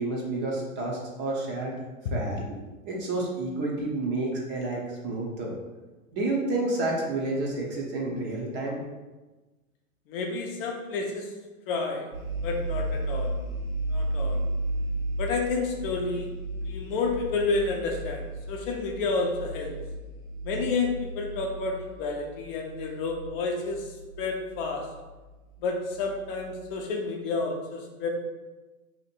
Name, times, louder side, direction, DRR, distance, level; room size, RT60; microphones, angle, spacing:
voice 1, 0.0-1.7 2.1-2.6 2.9-5.6 6.1-8.8, right 2 dB, 25° right, -2 dB, 0.6 m, -30 dB
voice 2, 10.1-11.3 11.7-12.1 12.4-13.4 13.9-14.4 15.2-16.3 16.6-19.7 20.4-23.9 24.2-24.9 25.6-28.1, left 3 dB, 40° left, 1 dB, 0.6 m, -30 dB
sound 1, 12.1-26.8, right 1 dB, 80° right, 1.2 m, -34 dB
2.9 x 2.5 x 4.2 m, 1.2 s
hypercardioid pair, 120°, 42 cm